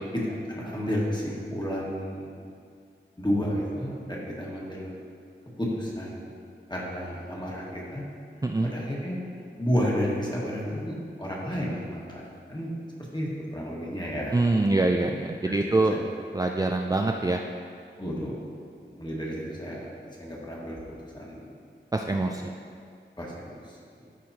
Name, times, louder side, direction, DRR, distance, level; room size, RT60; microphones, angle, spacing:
voice 1, 0.3-2.5 3.2-4.9 5.6-8.0 8.6-9.2 9.6-12.8 13.1-14.8 15.5-16.1 18.0-18.5 18.8-21.6 22.0-22.4 23.2-24.0, equal, 20° left, -5 dB, 1.6 m, -32 dB
voice 2, 14.3-15.9 16.3-17.4 21.9-22.4, right 2 dB, 20° right, 2 dB, 0.3 m, -24 dB
13.0 x 4.7 x 2.8 m, 2.3 s
wide cardioid pair, 65°, 20 cm